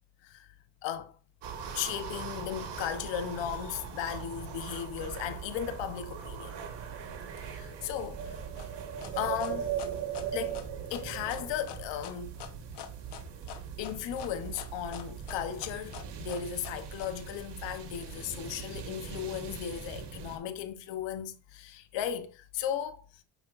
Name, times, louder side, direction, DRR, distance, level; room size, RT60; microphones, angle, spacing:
voice 1, 0.8-1.1 1.7-6.5 7.4-8.4 9.1-9.7 10.3-10.6 10.9-12.4 13.8-23.2, left 9 dB, 90° left, 1.0 m, -36 dB
sound 1, 1.4-20.4, right 8 dB, 70° right, 1.6 m, -40 dB
sound 2, 8.6-17.1, left 10 dB, 65° left, 1.1 m, -45 dB
8.5 x 5.8 x 2.5 m
cardioid pair, 85°, 43 cm